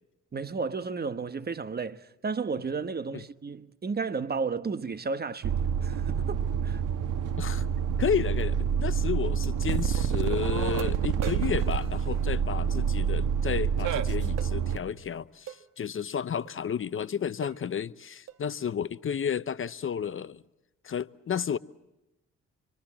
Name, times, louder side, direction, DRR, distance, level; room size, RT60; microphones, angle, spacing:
voice 1, 0.3-6.8, right 4 dB, 30° right, 1.2 m, -33 dB
sound 1, 5.4-14.8, right 7 dB, 85° right, 1.8 m, -27 dB
voice 2, 8.0-20.4 20.8-21.6, left 7 dB, 45° left, 0.8 m, -32 dB
sound 2, 8.4-8.5 9.4-9.5 10.2-10.3 10.8-12.7 14.4-14.6 15.5-15.7 16.4-16.6 17.0-17.1 17.4-17.7 18.3-18.5, right 10 dB, 60° right, 1.6 m, -44 dB
26.5 x 25.0 x 7.4 m
cardioid pair, 90°, 30 cm